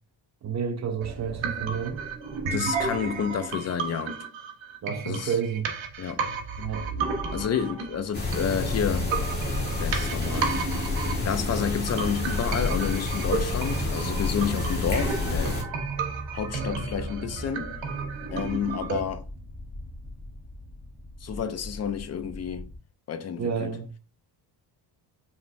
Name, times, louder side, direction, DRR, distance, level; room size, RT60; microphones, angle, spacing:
voice 1, 0.4-2.0 4.8-5.7 6.6-6.9 23.4-23.9, right 7 dB, 40° right, 0.5 m, -30 dB
sound 1, 1.0-19.0, right 4 dB, 80° right, 1.1 m, -33 dB
voice 2, 2.5-4.1 5.0-5.3 6.0-6.2 7.3-9.1 9.8-10.5 11.2-15.6 16.3-17.7 18.3-19.2 21.2-22.7 23.1-23.7, left 7 dB, 35° left, 0.5 m, -30 dB
sound 2, 8.1-15.6, left 3 dB, 20° left, 1.3 m, -29 dB
sound 3, 15.3-22.8, left 1 dB, 5° right, 1.1 m, -43 dB
5.2 x 3.3 x 2.6 m
wide cardioid pair, 155°, 45 cm